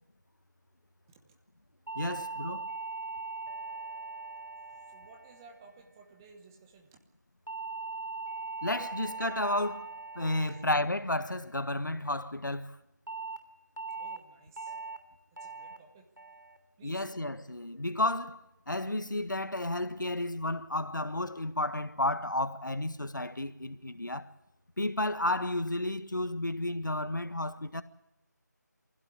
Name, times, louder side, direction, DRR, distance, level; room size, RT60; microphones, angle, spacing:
voice 1, 1.9-2.7 8.6-9.9 10.1-12.8 16.8-18.4 18.7-24.3 24.8-27.8, left 1 dB, 80° left, 1.6 m, -32 dB
sound 1, 1.9-6.3 7.5-11.9 13.1-13.4 13.8-14.2 14.6-15.0 15.4-15.8 16.2-16.6 17.0-17.4, right 3 dB, 90° right, 3.1 m, -41 dB
voice 2, 4.9-7.0 10.4-10.5 13.9-14.7 15.4-16.0 16.8-17.1, right 4 dB, 10° right, 1.2 m, -56 dB
24.0 x 16.0 x 8.7 m
figure-of-eight pair, 165°, 10 cm